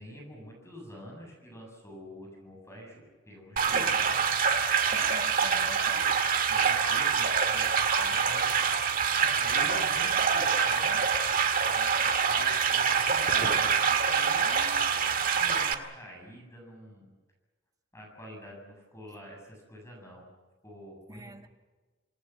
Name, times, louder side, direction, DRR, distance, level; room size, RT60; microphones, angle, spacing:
voice 1, 0.0-4.3 6.4-8.7 9.2-11.0 11.6-15.0 15.3-17.1 17.9-20.3 20.6-21.5, equal, 15° left, 0 dB, 7.8 m, -47 dB
sound 1, 3.6-15.7, right 6 dB, 45° right, 1.9 m, -25 dB
voice 2, 3.7-4.1 4.9-6.0 6.6-6.7 21.1-21.5, right 2 dB, 20° right, 5 dB, 1.7 m, -44 dB
28.0 x 19.5 x 7.4 m, 1.2 s
head